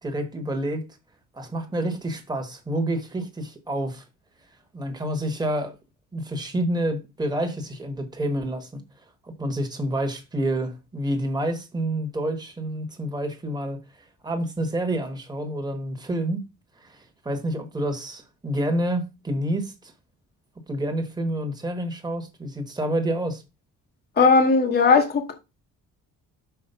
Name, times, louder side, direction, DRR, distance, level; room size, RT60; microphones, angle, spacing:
voice 1, 0.0-0.8 1.3-4.0 4.7-5.8 6.1-8.8 9.2-13.8 14.2-16.4 16.8-19.9 20.7-23.4, right 1 dB, 10° right, 1.3 m, -28 dB
voice 2, 24.2-25.3, left 4 dB, 30° left, 1.0 m, -18 dB
5.9 x 4.4 x 5.5 m
cardioid pair, 150°, 33 cm